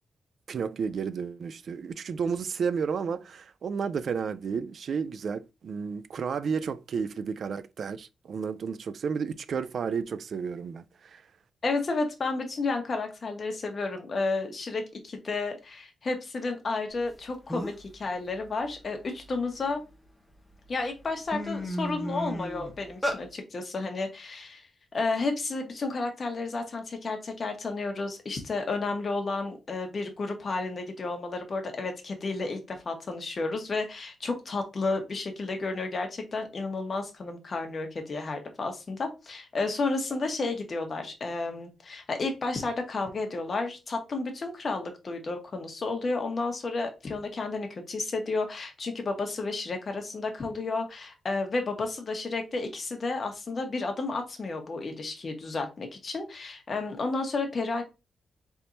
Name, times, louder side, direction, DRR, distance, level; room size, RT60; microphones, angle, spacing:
voice 1, 0.5-11.2, right 6 dB, 60° right, 0.3 m, -32 dB
voice 2, 11.6-19.8 20.7-24.7 24.9-57.8, left 3 dB, 45° left, 1.1 m, -32 dB
sound 1, 17.1-17.2 17.5-17.9 18.4-19.9 20.5-20.7 21.0-23.2, equal, 5° left, 0.8 m, -33 dB
4.3 x 3.4 x 2.6 m
cardioid pair, 95°, 0 cm